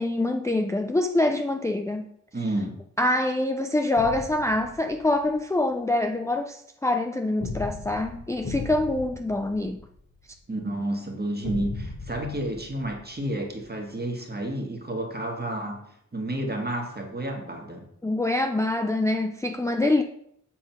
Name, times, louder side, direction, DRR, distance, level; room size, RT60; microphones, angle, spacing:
voice 1, 0.0-2.1 3.0-9.8 18.0-20.0, left 2 dB, 10° left, 0.4 m, -25 dB
voice 2, 2.3-2.8 10.5-15.8 16.1-17.9, right 1 dB, 30° right, 1.6 m, -31 dB
sound 1, 4.0-5.3 7.4-10.4 11.4-13.6, left 3 dB, 65° left, 1.6 m, -37 dB
7.5 x 3.8 x 5.9 m
wide cardioid pair, 75°, 31 cm